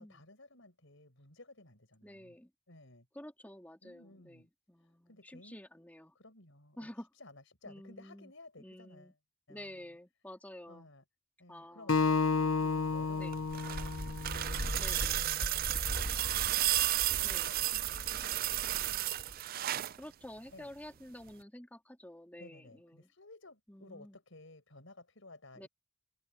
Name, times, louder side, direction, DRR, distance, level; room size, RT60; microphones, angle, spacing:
voice 1, 0.0-2.4 2.7-3.1 3.8-4.5 5.1-5.6 6.1-6.9 7.1-9.1 9.5-10.0 10.7-11.0 11.4-12.0 12.7-19.1 20.5-20.7 22.4-25.7, left 2 dB, 70° left, 6.4 m, -56 dB
voice 2, 2.0-2.5 3.1-6.1 6.8-7.1 7.6-8.3 8.6-9.1 9.5-10.9 11.5-13.3 14.8-15.2 17.2-17.5 20.0-23.1 23.7-24.2 25.5-25.7, left 1 dB, 10° left, 2.7 m, -50 dB
Acoustic guitar, 11.9-15.2, left 4 dB, 85° left, 0.8 m, -32 dB
sound 1, 13.2-20.0 21.3-21.4, right 14 dB, 45° right, 0.4 m, -33 dB
Wind, 13.5-19.4, left 1 dB, 50° left, 2.2 m, -41 dB
open air
head